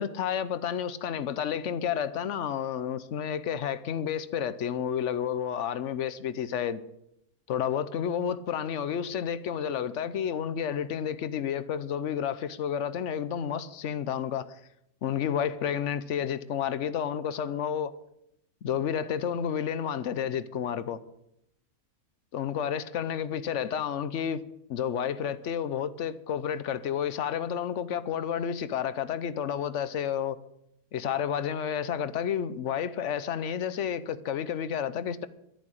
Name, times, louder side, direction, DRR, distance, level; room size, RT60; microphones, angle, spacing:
voice 1, 0.0-6.8 7.5-14.6 15.0-17.9 18.6-21.0 22.3-24.4 24.7-30.4 30.9-35.3, left 8 dB, 60° left, 1.0 m, -30 dB
11.5 x 11.0 x 6.5 m
omnidirectional pair, 1.6 m